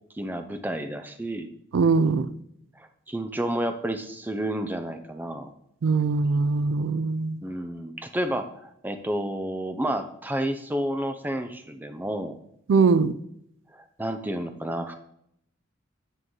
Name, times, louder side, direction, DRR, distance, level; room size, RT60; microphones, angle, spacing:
voice 1, 0.1-1.5 2.8-5.5 7.4-12.4 13.7-14.9, right 1 dB, 10° right, 8 dB, 0.4 m, -30 dB
voice 2, 1.7-2.3 5.8-7.4 12.7-13.1, right 4 dB, 80° right, 14 dB, 0.4 m, -21 dB
9.2 x 3.7 x 3.1 m, 0.73 s
head